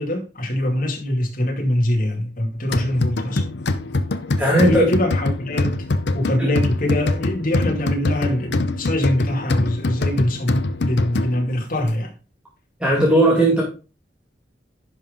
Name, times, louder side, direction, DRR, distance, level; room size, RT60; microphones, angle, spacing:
voice 1, 0.0-3.4 4.6-5.8 6.1-12.1, left 1 dB, 50° left, 2.5 m, -23 dB
sound 1, 2.7-11.6, left 2 dB, 75° left, 0.7 m, -24 dB
voice 2, 4.4-4.8 6.4-6.5 12.8-13.6, right 1 dB, 5° right, 2.2 m, -16 dB
10.5 x 5.6 x 3.8 m
head